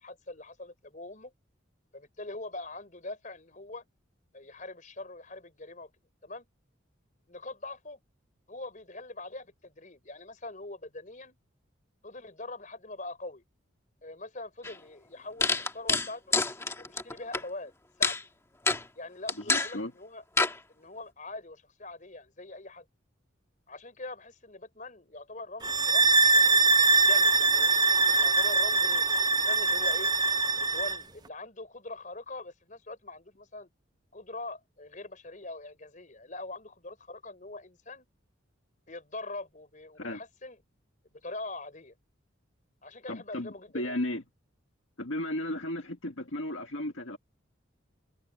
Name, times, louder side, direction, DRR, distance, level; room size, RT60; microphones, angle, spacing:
voice 1, 0.0-1.3 1.9-3.8 4.3-5.9 6.2-6.5 7.3-8.0 8.5-11.4 12.0-13.4 14.0-16.4 16.8-17.7 18.0-18.2 18.9-20.2 20.7-22.9 23.7-26.7 27.0-27.7 28.1-30.1 30.6-33.7 34.1-38.1 38.9-40.6 41.1-41.9 42.8-44.0, left 2 dB, 40° left, 4.7 m, -43 dB
sound 1, 14.6-14.7 15.4-17.4 18.0-18.2 18.7-18.8 19.3-19.7 20.4-20.5, left 3 dB, 15° left, 2.0 m, -27 dB
voice 2, 19.4-19.9 40.0-40.2 43.1-44.2 45.0-47.2, left 1 dB, 75° left, 1.8 m, -34 dB
sound 2, 25.6-31.0, right 3 dB, 20° right, 0.7 m, -23 dB
head